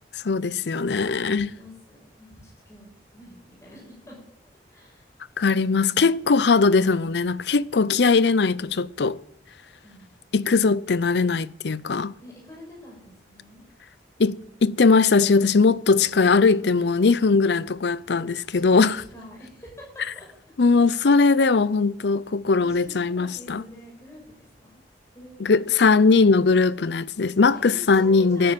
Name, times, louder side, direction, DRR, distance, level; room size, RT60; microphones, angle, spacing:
voice 1, 0.1-1.5 5.4-9.2 10.3-12.1 14.2-19.0 20.6-23.6 25.4-28.5, left 4 dB, 70° left, 0.6 m, -20 dB
voice 2, 1.3-4.2 4.7-5.2 9.8-10.2 12.2-13.6 18.5-20.3 20.6-21.2 22.5-24.8 25.1-25.7 27.5-28.5, left 1 dB, 15° left, 6.8 m, -46 dB
12.5 x 10.0 x 8.9 m
head